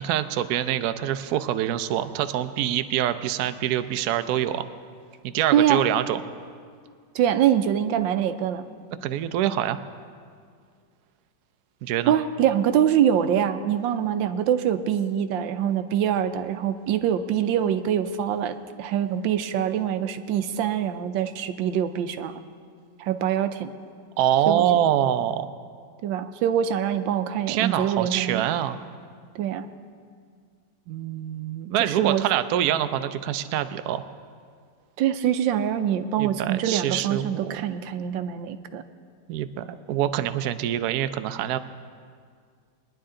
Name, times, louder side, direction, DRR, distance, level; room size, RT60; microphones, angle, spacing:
voice 1, 0.0-4.7 5.2-6.2 9.0-9.8 11.8-12.1 24.2-25.5 27.5-28.8 30.9-34.1 36.2-37.7 39.3-41.6, right 11 dB, 70° right, 11 dB, 0.9 m, -25 dB
voice 2, 5.5-5.8 7.1-8.7 12.1-22.4 23.0-23.7 24.5-24.6 26.0-28.4 29.3-29.7 31.8-32.2 35.0-38.8, right 9 dB, 90° right, 10 dB, 1.4 m, -24 dB
21.0 x 10.5 x 3.8 m, 2.1 s
omnidirectional pair, 2.0 m